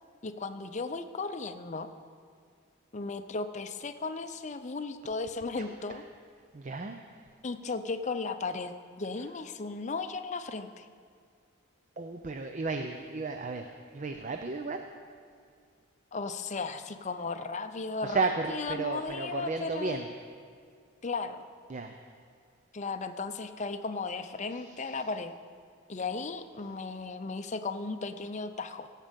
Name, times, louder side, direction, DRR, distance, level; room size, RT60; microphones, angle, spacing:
voice 1, 0.2-1.9 2.9-6.0 7.4-10.9 16.1-20.1 21.0-21.5 22.7-25.3 25.9-28.9, left 4 dB, 35° left, 9 dB, 0.5 m, -35 dB
voice 2, 6.5-7.0 12.0-14.8 18.0-20.1 21.7-22.0, right 3 dB, 35° right, 6 dB, 0.5 m, -33 dB
16.5 x 7.4 x 5.2 m, 2.1 s
head